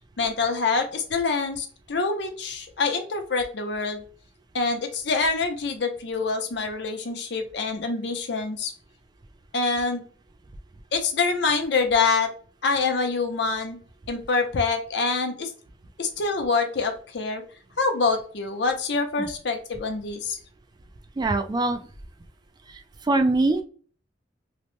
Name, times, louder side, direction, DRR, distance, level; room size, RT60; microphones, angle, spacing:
voice 1, 0.2-4.0 4.5-8.7 9.5-10.0 10.9-12.3 12.6-13.8 14.1-15.5 16.0-17.4 17.8-20.4, left 4 dB, 70° left, 5 dB, 0.6 m, -25 dB
voice 2, 21.2-21.9 22.7-23.6, right 2 dB, 25° right, 7 dB, 0.3 m, -23 dB
2.9 x 2.1 x 3.0 m, 0.42 s
head